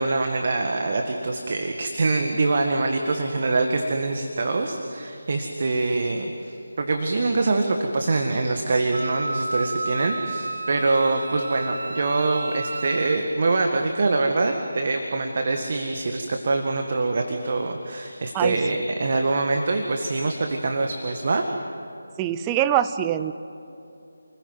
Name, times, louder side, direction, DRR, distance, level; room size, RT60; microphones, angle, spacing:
voice 1, 0.0-21.4, right 3 dB, 40° right, 4 dB, 1.8 m, -24 dB
Wind instrument woodwind instrument, 8.9-13.2, right 2 dB, 55° right, 1.6 m, -32 dB
voice 2, 22.2-23.3, right 11 dB, 10° right, 11 dB, 0.6 m, -23 dB
29.5 x 21.0 x 9.4 m, 2.8 s
figure-of-eight pair, 155°, 0 cm